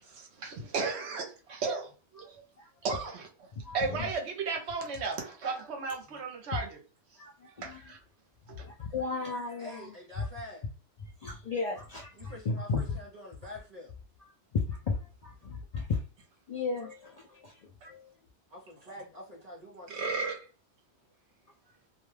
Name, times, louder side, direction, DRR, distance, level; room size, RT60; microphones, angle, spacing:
voice 1, 0.1-1.9 2.1-2.4 2.8-3.5 3.7-6.8 7.6-8.0 8.6-8.7 19.9-20.4, right 4 dB, 70° right, 0.9 m, -34 dB
voice 2, 3.6-4.1 7.2-7.3 7.6-7.8 8.5-9.9 11.0-12.8 14.5-15.0 15.2-16.0 16.5-17.5 17.8-18.1, left 4 dB, 70° left, 0.3 m, -34 dB
voice 3, 9.6-10.7 12.2-13.9 18.5-20.2, left 1 dB, 40° right, 0.7 m, -46 dB
2.4 x 2.2 x 3.1 m
omnidirectional pair, 1.2 m